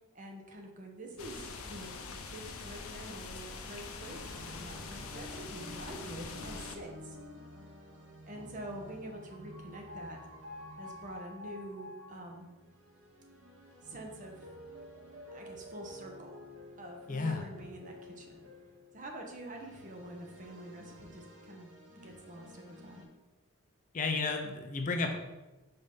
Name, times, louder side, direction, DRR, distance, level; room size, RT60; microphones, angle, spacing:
voice 1, 0.1-1.9 2.3-7.2 8.2-10.2 10.8-12.5 13.8-14.5 15.3-16.4 16.8-18.5 18.9-23.0, right 1 dB, 35° right, 1 dB, 1.0 m, -46 dB
sound 1, 1.2-6.8, left 4 dB, 80° left, 0.7 m, -44 dB
sound 2, 4.0-23.0, left 1 dB, 85° right, 1.9 m, -50 dB
voice 2, 17.1-17.5 23.9-25.2, left 3 dB, 35° left, 4 dB, 0.5 m, -32 dB
5.3 x 4.0 x 5.5 m, 1.1 s
head